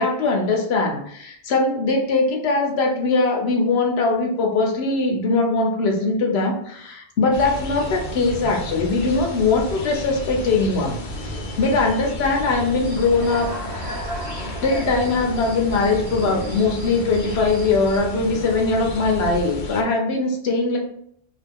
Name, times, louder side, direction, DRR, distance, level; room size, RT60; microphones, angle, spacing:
voice 1, 0.0-14.0 14.5-20.8, left 3 dB, 75° left, 2 dB, 0.9 m, -21 dB
sound 1, 7.3-19.8, left 1 dB, 55° left, 0.7 m, -32 dB
Human voice / Cricket, 12.8-18.0, equal, 70° right, 1.1 m, -36 dB
2.8 x 2.3 x 3.4 m, 0.68 s
omnidirectional pair, 1.1 m